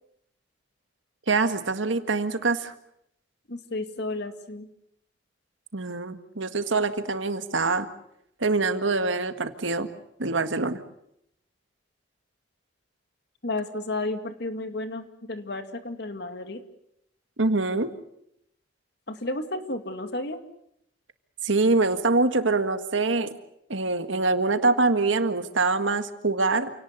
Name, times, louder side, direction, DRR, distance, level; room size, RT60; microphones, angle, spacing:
voice 1, 1.3-2.7 5.7-7.9 8.4-9.9 10.2-10.8 17.4-17.9 21.4-23.3 23.7-26.7, right 3 dB, 90° right, 9 dB, 1.8 m, -24 dB
voice 2, 3.5-4.7 13.4-16.6 19.1-20.4, left 2 dB, 60° left, 8 dB, 2.3 m, -32 dB
28.5 x 18.0 x 8.1 m, 0.77 s
head